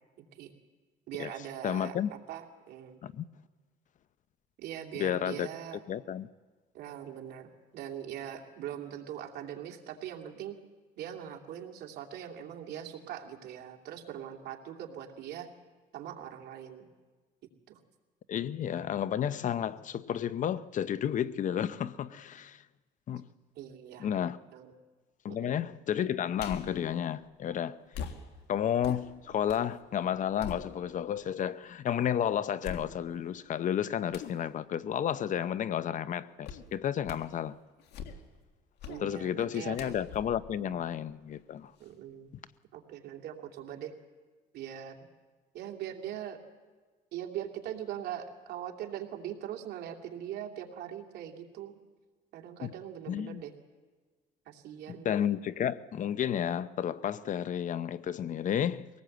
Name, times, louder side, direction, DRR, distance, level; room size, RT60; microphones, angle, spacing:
voice 1, 0.2-0.5 1.1-1.9 2.3-3.0 4.6-5.8 6.7-10.6 11.0-15.5 15.9-16.9 17.7-17.8 23.6-24.1 24.5-24.7 25.3-25.5 38.9-39.8 40.6-40.8 41.8-42.3 42.7-43.9 44.5-45.0 45.5-46.4 47.1-51.8 52.3-53.5 54.5-55.1, right 10 dB, 75° right, 2.7 m, -41 dB
voice 2, 1.6-2.1 3.0-3.3 5.0-5.5 5.9-6.3 18.3-22.6 23.1-23.3 24.0-24.4 25.2-27.8 28.5-37.6 39.0-41.7 52.6-52.7 53.1-53.4 55.0-58.9, left 9 dB, 50° left, 0.7 m, -32 dB
sound 1, 26.4-26.8 27.9-29.7 30.1-31.2 31.7-31.8 32.6-33.3 34.1-34.4 36.4-36.7 37.0-37.4 37.8-38.4 38.8-39.1 39.7-41.4 41.8-41.9, left 7 dB, 80° left, 1.8 m, -43 dB
23.5 x 18.5 x 7.9 m
cardioid pair, 110°, 17 cm